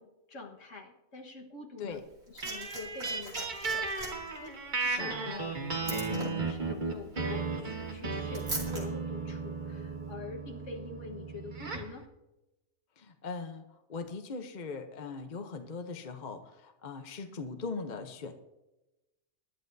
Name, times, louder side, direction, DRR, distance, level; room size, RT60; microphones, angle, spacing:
voice 1, 0.0-2.0 2.3-5.5 5.8-12.1, left 4 dB, 65° left, 2 dB, 1.8 m, -45 dB
Liquid, 1.9-8.8 9.9-10.0, right 2 dB, 75° right, 3.2 m, -43 dB
sound 1, 2.4-12.0, right 4 dB, 35° right, 1.3 m, -35 dB
voice 2, 4.8-5.1 13.0-18.3, left 4 dB, 40° left, 6 dB, 0.8 m, -40 dB
21.0 x 11.0 x 2.7 m, 0.98 s
omnidirectional pair, 1.4 m